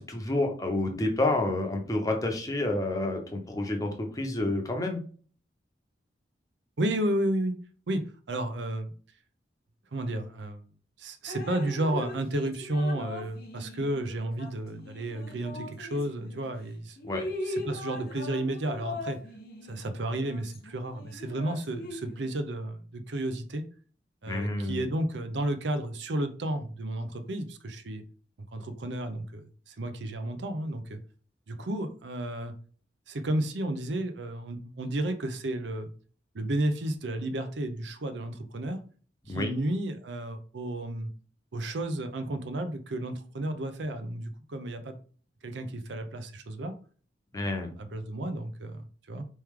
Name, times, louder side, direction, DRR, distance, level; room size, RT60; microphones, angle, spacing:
voice 1, 0.0-5.0 17.1-17.2 24.3-24.8 39.3-39.5 47.3-47.7, left 2 dB, 20° left, 3 dB, 0.7 m, -29 dB
voice 2, 6.8-7.5 7.9-8.9 9.9-10.6 11.0-17.0 17.4-19.2 19.6-23.6 24.2-28.0 28.5-31.0 31.5-32.5 33.1-35.9 36.3-38.8 39.3-41.1 41.5-45.0 45.4-46.7 47.3-49.3, right 1 dB, 75° right, 9 dB, 0.6 m, -32 dB
Drip, 11.3-16.5 17.0-22.3, left 1 dB, 55° left, 0.8 m, -40 dB
4.5 x 3.2 x 3.6 m, 0.42 s
head